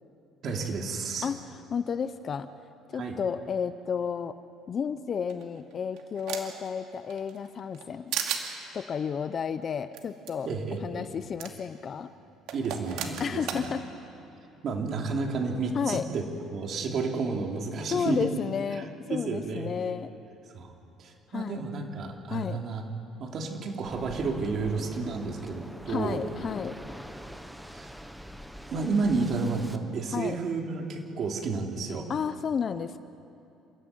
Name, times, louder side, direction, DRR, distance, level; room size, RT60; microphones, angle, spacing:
voice 1, 0.4-1.3 2.9-3.2 10.4-11.1 12.5-13.7 14.6-16.2 16.5-18.3 19.1-19.7 20.5-20.7 21.0-22.9 23.2-26.2 27.7-27.9 28.7-32.1, right 4 dB, 45° right, 2 dB, 3.0 m, -31 dB
voice 2, 1.2-2.5 2.9-4.4 4.7-8.2 8.7-10.5 10.8-12.1 13.2-13.9 15.7-16.1 17.9-20.1 21.3-21.6 22.3-22.6 25.9-26.8 30.1-30.4 32.1-33.0, left 7 dB, 35° left, 12 dB, 0.7 m, -32 dB
sound 1, 5.3-6.7 7.1-7.9 8.1-8.5 9.9-10.0 10.3-10.4 11.4-11.5 12.5-13.6, right 9 dB, 75° right, 2.4 m, -34 dB
Waves surf, 23.8-29.8, equal, ahead, 1.0 m, -43 dB
29.5 x 13.5 x 9.5 m, 2.8 s
cardioid pair, 150°, 0 cm